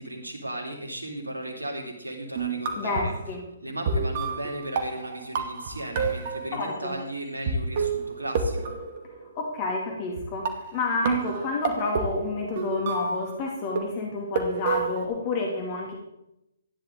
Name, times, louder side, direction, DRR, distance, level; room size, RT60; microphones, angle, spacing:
voice 1, 0.0-3.1 3.6-8.7, right 1 dB, 85° right, 1 dB, 3.2 m, -36 dB
sound 1, 2.4-3.2 3.9-6.7 7.5-7.6 7.8-9.5 10.2-10.3 10.4-13.3 13.8-15.1, right 5 dB, 45° right, 2.1 m, -29 dB
voice 2, 2.8-3.4 6.5-7.0 9.4-15.9, left 3 dB, 35° left, 0 dB, 2.5 m, -29 dB
14.0 x 10.5 x 3.8 m, 0.85 s
figure-of-eight pair, 135°, 0 cm